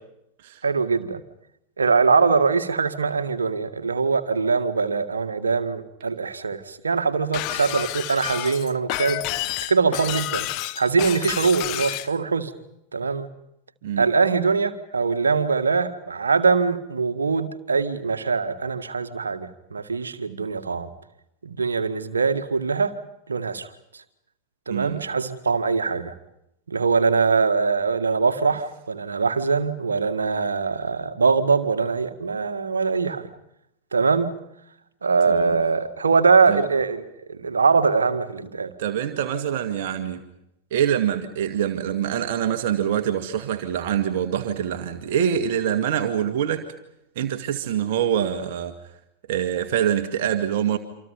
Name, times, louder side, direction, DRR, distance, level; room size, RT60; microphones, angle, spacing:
voice 1, 0.6-1.2 1.8-9.2 9.7-10.5 10.8-12.5 12.9-13.3 14.0-20.9 21.4-22.9 23.3-23.7 23.9-24.0 24.7-26.1 26.7-33.3 33.9-34.3 35.0-37.0 37.3-38.7, right 4 dB, 75° right, 2.0 m, -22 dB
Shatter, 7.3-12.1, left 17 dB, 45° left, 1.0 m, -29 dB
voice 2, 24.7-25.0 35.3-35.6 36.5-36.7 38.8-40.2 40.7-46.7 47.2-48.7 49.3-50.8, right 9 dB, 55° right, 2.0 m, -25 dB
28.0 x 26.5 x 5.4 m
figure-of-eight pair, 90°, 0 cm